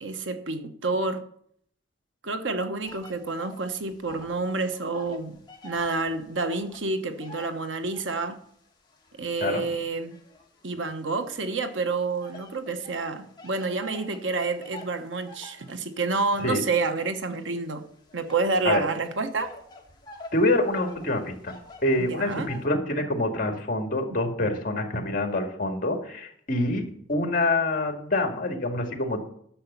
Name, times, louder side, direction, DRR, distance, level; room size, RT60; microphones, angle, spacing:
voice 1, 0.0-1.2 2.2-5.4 5.6-8.4 9.2-10.2 10.6-17.8 18.1-19.5 22.1-22.5, right 3 dB, 80° right, 1.1 m, -29 dB
sound 1, 2.8-4.4 4.7-8.3 8.9-11.0 11.6-22.7, left 1 dB, 25° left, 1.9 m, -47 dB
voice 2, 20.3-21.5 21.8-29.2, left 2 dB, 45° left, 2.1 m, -26 dB
10.0 x 7.0 x 6.9 m
head